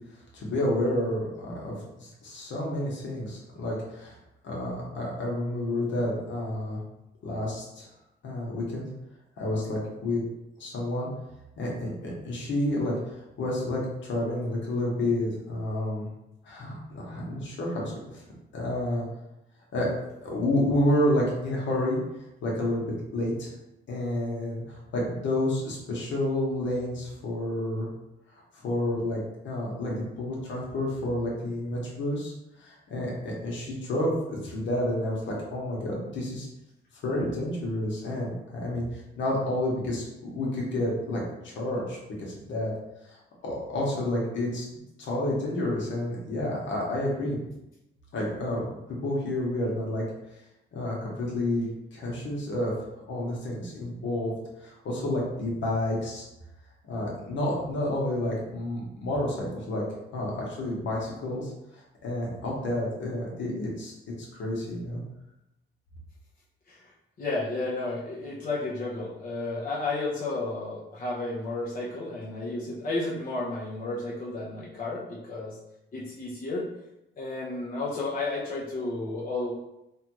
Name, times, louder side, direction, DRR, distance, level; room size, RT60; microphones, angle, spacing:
voice 1, 0.3-4.2 4.4-6.8 7.2-7.9 8.2-8.9 9.4-10.2 10.6-11.1 11.6-16.1 16.4-18.2 18.5-19.1 19.7-19.9 20.2-22.0 22.4-23.5 23.9-27.9 28.5-32.3 32.6-36.5 37.0-42.7 43.1-43.2 43.4-44.7 45.0-47.4 48.1-50.0 50.7-52.7 53.1-54.3 54.6-56.2 56.8-59.8 60.1-63.9 64.3-65.0, left 1 dB, 70° left, -3 dB, 1.1 m, -30 dB
voice 2, 67.2-75.6 75.9-76.6 77.2-79.5, left 2 dB, 45° left, -6 dB, 0.8 m, -32 dB
3.3 x 2.3 x 3.0 m, 0.89 s
cardioid pair, 90°, 20 cm